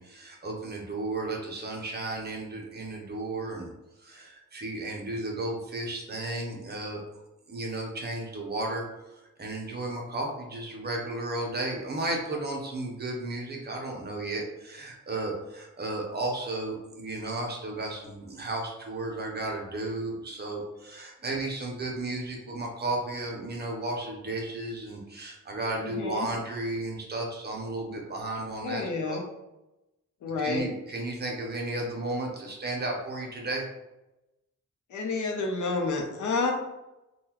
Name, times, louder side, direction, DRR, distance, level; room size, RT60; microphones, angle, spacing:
voice 1, 0.0-3.7 4.0-7.0 7.5-8.8 9.1-29.2 30.4-33.6, right 2 dB, 35° right, -1 dB, 0.6 m, -34 dB
voice 2, 25.8-26.3 28.6-29.2 30.2-30.7 34.9-36.5, left 3 dB, 80° left, 2 dB, 0.6 m, -29 dB
3.7 x 2.2 x 2.9 m, 0.96 s
wide cardioid pair, 165°, 30 cm